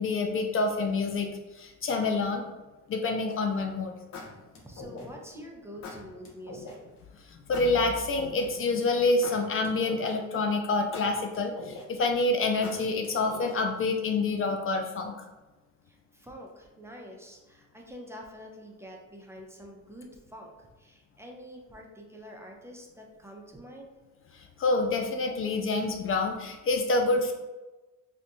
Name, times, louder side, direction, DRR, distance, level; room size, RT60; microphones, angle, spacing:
voice 1, 0.0-2.4 2.9-4.0 7.3-15.1 24.3-27.3, left 3 dB, 45° left, 4 dB, 0.4 m, -27 dB
sound 1, 3.3-3.6 4.1-5.3 5.8-6.8 7.5-8.7 9.2-10.4 10.9-12.1 12.6-13.8, left 3 dB, 65° left, 0.8 m, -42 dB
voice 2, 4.6-6.8 15.9-23.9, equal, 10° right, 0 dB, 0.5 m, -46 dB
3.4 x 2.6 x 2.6 m, 1.2 s
cardioid pair, 90°, 30 cm